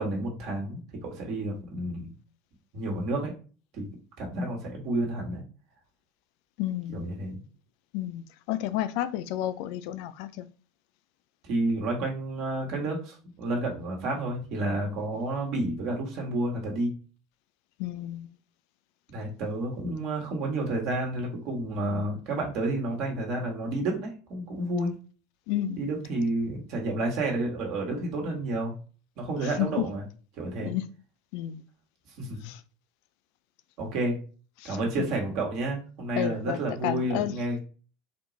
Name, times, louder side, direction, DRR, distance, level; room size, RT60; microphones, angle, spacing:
voice 1, 0.0-2.1 2.7-3.3 3.7-3.9 4.2-5.4 6.9-7.4 11.4-16.9 19.1-24.9 25.8-28.7 29.2-30.0 30.4-30.7 32.2-32.5 33.8-34.2 34.6-37.6, right 2 dB, 55° right, 1.7 m, -30 dB
voice 2, 6.6-7.1 7.9-10.5 17.8-18.3 25.5-25.8 29.4-29.7 30.6-30.8 31.3-31.6 32.4-32.6 34.6-35.1 36.2-37.3, left 13 dB, 60° left, 0.4 m, -31 dB
4.2 x 3.0 x 4.0 m
hypercardioid pair, 75°, 0 cm